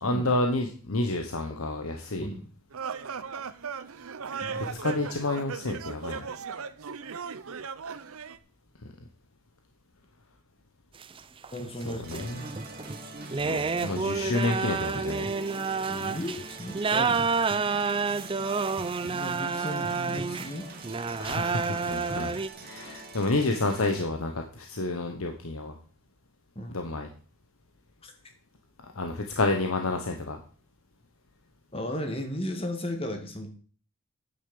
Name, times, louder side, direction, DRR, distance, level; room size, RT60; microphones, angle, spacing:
voice 1, 0.0-2.3 4.5-6.3 11.9-12.4 13.4-15.3 21.2-22.3 22.6-25.8 26.7-27.1 28.8-30.4, left 2 dB, 80° left, 4 dB, 1.1 m, -29 dB
sound 1, 2.7-8.4, right 6 dB, 85° right, 0.7 m, -37 dB
voice 2, 4.4-5.0 11.5-12.3 15.9-17.5 19.0-20.7 26.6-26.8 28.0-28.1 31.7-33.5, left 1 dB, 25° left, 5 dB, 1.7 m, -35 dB
sound 2, 11.0-22.5, right 4 dB, 25° right, 0.4 m, -29 dB
sound 3, 12.0-24.0, right 2 dB, 45° right, 2.0 m, -45 dB
9.5 x 6.7 x 6.9 m, 0.42 s
head